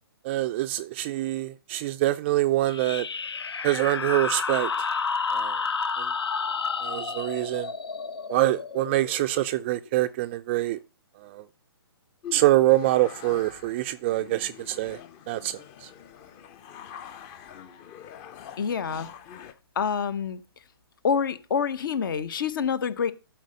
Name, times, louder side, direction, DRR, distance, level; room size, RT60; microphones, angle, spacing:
voice 1, 0.2-3.1 3.6-4.9 5.3-5.6 6.0-6.1 6.8-7.7 8.3-10.8 11.2-11.4 12.3-15.0 15.3-15.9, right 16 dB, 25° right, 0.3 m, -25 dB
sound 1, 2.6-9.9, left 5 dB, 75° left, 0.7 m, -31 dB
sound 2, 12.2-19.5, left 9 dB, 25° left, 0.7 m, -45 dB
voice 2, 18.6-19.1 19.8-20.4 21.0-23.1, left 6 dB, 55° left, 1.0 m, -27 dB
11.5 x 4.5 x 5.2 m
figure-of-eight pair, 130°, 13 cm